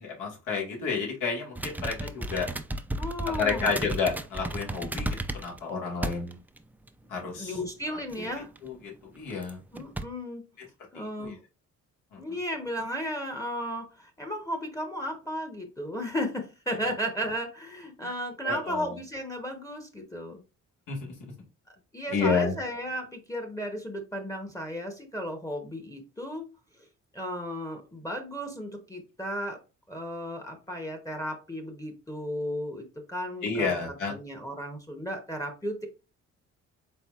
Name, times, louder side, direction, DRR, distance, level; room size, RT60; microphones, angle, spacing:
voice 1, 0.0-2.5 3.3-5.1 5.3-6.4 7.1-7.6 8.1-8.3 8.6-9.6 10.9-11.4 12.1-12.2 18.4-18.9 20.9-21.3 22.1-22.6 33.4-34.2, left 5 dB, 85° left, -2 dB, 1.7 m, -30 dB
sound 1, 1.6-5.6 6.0-6.6 6.9-7.0 8.1-8.6 9.3-9.5 9.8-10.0, right 1 dB, 5° right, 0.3 m, -33 dB
voice 2, 3.0-3.7 7.3-8.5 9.7-10.4 10.9-11.4 12.2-20.4 21.9-26.4 27.1-29.6 29.9-33.8 34.1-35.9, equal, 10° left, 2 dB, 0.8 m, -34 dB
4.3 x 3.8 x 2.3 m, 0.31 s
cardioid pair, 90°, 30 cm